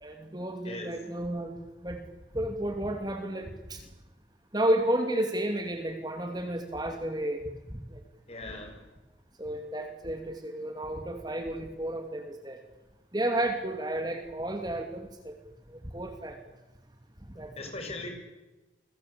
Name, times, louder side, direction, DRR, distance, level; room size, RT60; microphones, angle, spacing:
voice 1, 0.0-1.6 1.8-2.0 2.3-3.8 4.5-8.0 9.4-12.6 13.1-15.3 15.7-16.4 17.3-17.5, right 1 dB, 20° right, 5 dB, 2.6 m, -32 dB
voice 2, 8.3-8.8 17.5-18.1, left 2 dB, 35° left, 3 dB, 7.4 m, -39 dB
29.5 x 22.5 x 8.6 m, 1.1 s
head